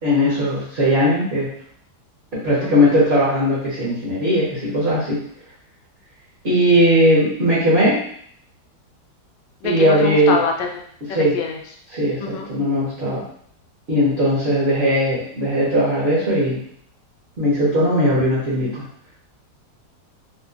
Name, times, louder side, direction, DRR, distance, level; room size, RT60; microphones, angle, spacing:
voice 1, 0.0-1.5 2.3-5.2 6.4-8.0 9.6-10.4 11.1-11.4 11.9-13.2 13.9-16.6 17.4-18.8, equal, 40° right, -9 dB, 1.3 m, -18 dB
voice 2, 2.6-2.9 9.6-10.7 11.1-11.6 12.2-12.5, left 5 dB, 75° left, 2 dB, 1.2 m, -25 dB
4.2 x 2.4 x 2.4 m, 0.63 s
omnidirectional pair, 2.1 m